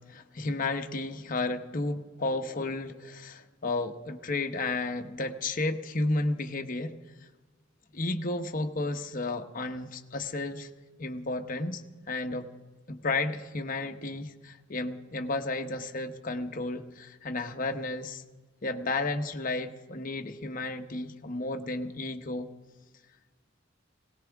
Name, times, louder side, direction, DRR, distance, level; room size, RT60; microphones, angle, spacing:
voice 1, 0.1-6.9 7.9-10.7 11.0-12.5 12.9-18.2 18.6-22.5, left 2 dB, 45° left, 5 dB, 1.0 m, -32 dB
20.5 x 18.0 x 3.5 m, 1.3 s
head